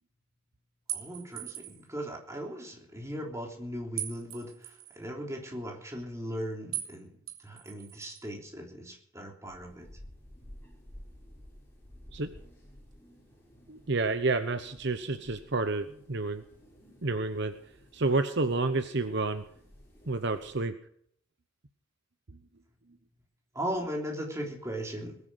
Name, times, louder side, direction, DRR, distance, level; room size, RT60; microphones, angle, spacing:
voice 1, 0.9-7.1 7.4-9.9 23.5-25.2, equal, 15° right, 1 dB, 3.4 m, -38 dB
sound 1, 0.9-1.9 4.0-5.0 6.7-7.0 7.3-8.2, right 12 dB, 85° right, 3.2 m, -39 dB
sound 2, 9.5-20.6, equal, 10° left, 6.4 m, -54 dB
voice 2, 13.7-16.4 17.0-17.5 17.9-19.4 20.1-20.7, right 3 dB, 55° right, 10 dB, 0.9 m, -29 dB
21.0 x 9.8 x 6.4 m, 0.64 s
head